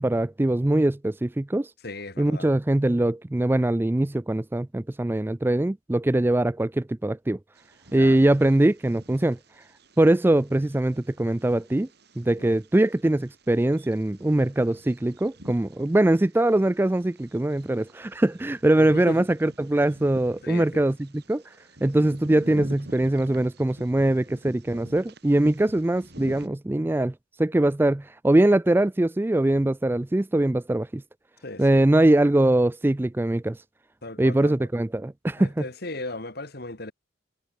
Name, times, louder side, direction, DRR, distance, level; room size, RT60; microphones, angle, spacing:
voice 1, 0.0-1.7 2.2-7.4 7.9-9.4 10.0-11.9 12.2-21.4 21.8-31.0 31.6-33.6 34.2-35.6, right 1 dB, 10° right, 0.4 m, -22 dB
voice 2, 1.8-2.5 7.9-8.2 12.4-12.5 18.8-19.3 20.4-20.8 31.4-31.8 34.0-34.7 35.4-36.9, left 2 dB, 55° left, 3.1 m, -37 dB
Bird vocalization bird call bird song, 7.6-26.5, right 1 dB, 60° right, 6.2 m, -47 dB
head